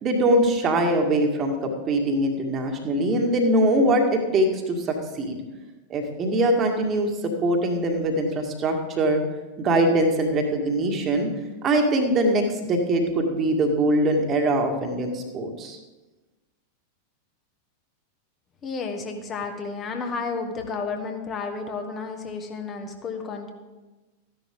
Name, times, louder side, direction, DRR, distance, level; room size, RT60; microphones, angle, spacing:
voice 1, 0.0-5.4 5.9-9.2 9.6-11.3 11.6-15.8, right 1 dB, 30° right, 4 dB, 1.9 m, -22 dB
voice 2, 18.6-23.5, left 4 dB, 25° left, 4 dB, 1.6 m, -32 dB
14.5 x 11.0 x 3.7 m, 1.2 s
figure-of-eight pair, 90°, 0 cm